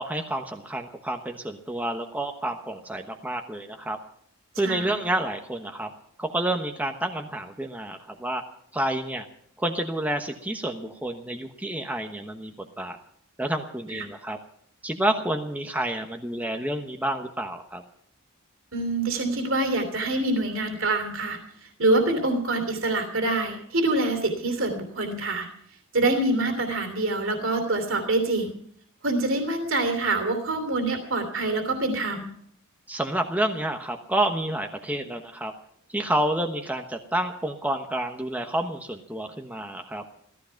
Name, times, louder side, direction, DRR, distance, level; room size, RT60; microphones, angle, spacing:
voice 1, 0.0-4.0 4.6-5.9 6.2-8.4 8.7-9.3 9.6-13.0 13.4-14.4 14.8-17.8 32.9-35.5 35.9-40.0, right 1 dB, 5° right, 4 dB, 1.1 m, -29 dB
voice 2, 4.6-5.0 13.9-14.1 18.7-25.5 25.9-28.5 29.0-32.3, right 2 dB, 65° right, 6 dB, 3.0 m, -25 dB
16.5 x 14.5 x 5.8 m, 0.65 s
head